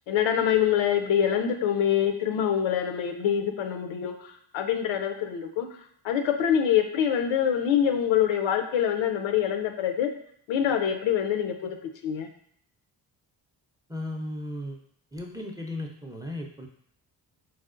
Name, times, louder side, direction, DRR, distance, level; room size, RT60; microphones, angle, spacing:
voice 1, 0.1-5.7 6.0-10.1 10.5-11.8 12.0-12.3, left 9 dB, 85° left, 5 dB, 0.5 m, -25 dB
voice 2, 13.9-14.8 15.1-16.7, left 1 dB, 10° right, 1 dB, 0.4 m, -35 dB
4.0 x 2.1 x 2.4 m, 0.67 s
cardioid pair, 70°, 45 cm